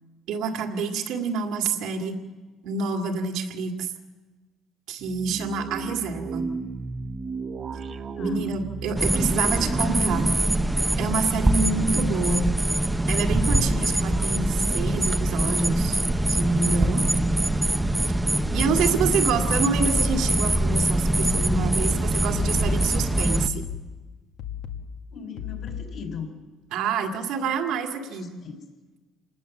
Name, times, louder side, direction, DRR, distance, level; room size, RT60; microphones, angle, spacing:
voice 1, 0.3-2.2 2.6-3.9 4.9-6.5 8.2-10.3 11.0-12.5 13.1-16.0 16.3-17.0 18.5-23.7 26.7-28.3, right 5 dB, 75° right, 3 dB, 2.2 m, -27 dB
sound 1, 5.0-12.2, right 5 dB, 35° right, 1.1 m, -34 dB
voice 2, 8.2-8.5 9.0-9.9 19.0-19.4 25.1-26.4 27.7-28.6, left 5 dB, 45° left, 5 dB, 4.2 m, -40 dB
sound 2, 9.0-23.5, right 1 dB, 5° right, 0.8 m, -23 dB
sound 3, 21.3-26.2, left 9 dB, 75° left, 1.9 m, -37 dB
27.5 x 19.5 x 7.3 m, 1.3 s
cardioid pair, 150°, 0 cm